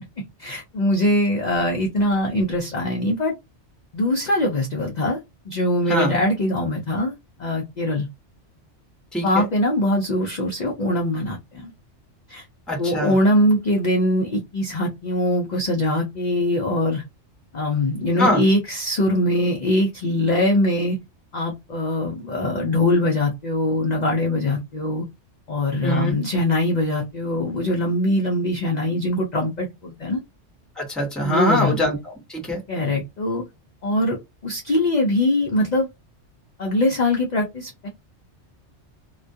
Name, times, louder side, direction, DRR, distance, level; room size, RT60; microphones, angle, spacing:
voice 1, 0.4-3.3 3.9-5.2 5.5-7.1 7.4-8.1 9.2-11.7 12.3-12.4 12.8-17.0 17.5-21.0 21.3-25.0 25.5-30.2 31.2-31.7 32.7-33.4 33.8-34.2 34.4-35.9 36.6-37.9, left 1 dB, 55° left, 0.5 m, -22 dB
voice 2, 9.1-9.5 12.7-13.2 18.2-18.4 25.8-26.2 30.8-32.6, equal, ahead, 0.6 m, -23 dB
2.2 x 2.2 x 2.6 m
omnidirectional pair, 1.2 m